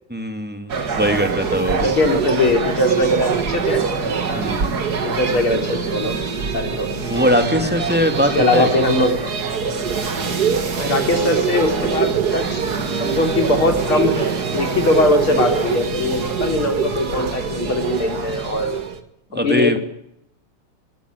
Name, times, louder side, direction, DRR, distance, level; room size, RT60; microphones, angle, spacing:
voice 1, 0.1-1.9 4.4-4.7 7.1-8.8 19.3-19.8, equal, 5° right, 6 dB, 2.5 m, -21 dB
sound 1, 0.7-19.0, right 5 dB, 50° right, 2.4 m, -24 dB
voice 2, 1.8-3.8 4.3-4.7 5.0-6.1 6.5-6.9 7.5-7.7 8.1-9.3 10.8-12.7 13.0-18.8 19.3-19.8, left 2 dB, 80° left, 5 dB, 4.6 m, -21 dB
22.5 x 13.5 x 9.8 m, 0.76 s
omnidirectional pair, 2.3 m